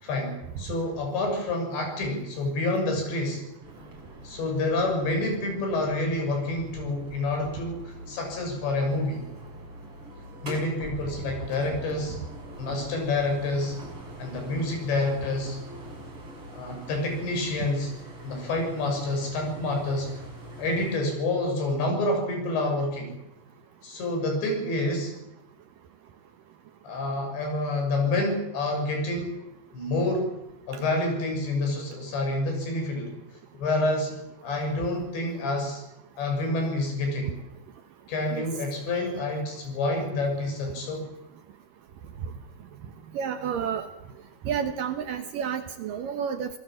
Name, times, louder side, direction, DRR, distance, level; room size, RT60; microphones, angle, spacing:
voice 1, 0.0-3.4 4.2-9.2 10.4-12.2 12.6-13.8 14.2-15.6 16.5-17.9 18.2-20.1 20.6-23.1 23.8-25.2 26.8-29.3 29.7-30.3 30.7-33.1 33.6-34.2 34.4-35.8 36.2-37.3 38.1-41.0, left 2 dB, 85° left, 3 dB, 8.5 m, -28 dB
sound 1, 3.6-21.0, right 1 dB, 30° right, 7.1 m, -43 dB
voice 2, 43.1-43.9 44.5-46.6, right 7 dB, 70° right, 8 dB, 2.3 m, -30 dB
27.0 x 18.5 x 7.6 m, 0.85 s
omnidirectional pair, 5.0 m